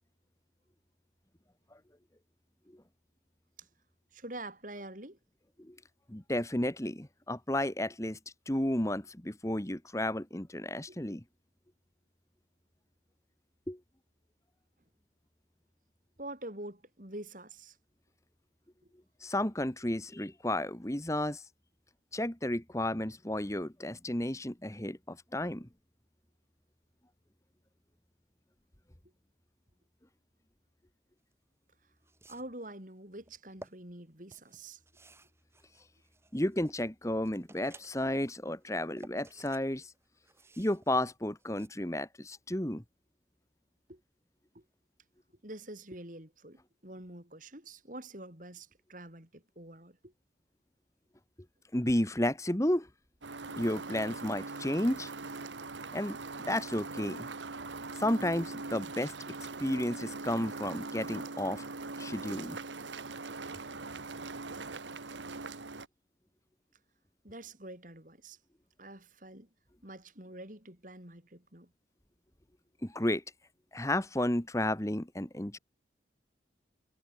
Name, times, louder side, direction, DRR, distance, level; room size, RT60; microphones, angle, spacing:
voice 1, 4.1-5.2 10.9-11.0 16.2-17.8 18.8-18.9 32.3-34.8 43.9-44.0 44.5-44.6 45.4-50.1 67.2-68.4 68.8-69.5 69.8-71.7, right 1 dB, 45° right, 5.2 m, -46 dB
voice 2, 6.1-8.2 8.5-11.2 13.7-13.8 19.2-21.4 22.1-25.7 36.3-39.9 40.6-42.8 51.7-52.9 53.6-55.1 55.9-56.2 56.5-57.3 57.9-59.1 59.6-61.6 62.0-62.6 72.8-73.2 73.7-75.6, left 1 dB, 15° left, 1.5 m, -32 dB
sound 1, 31.3-31.4 32.0-32.7 33.3-33.7 34.3-36.8 37.2-38.2 38.6-39.7 39.9-41.7, right 1 dB, 15° right, 7.7 m, -55 dB
sound 2, 53.2-65.9, right 3 dB, 80° right, 1.7 m, -41 dB
head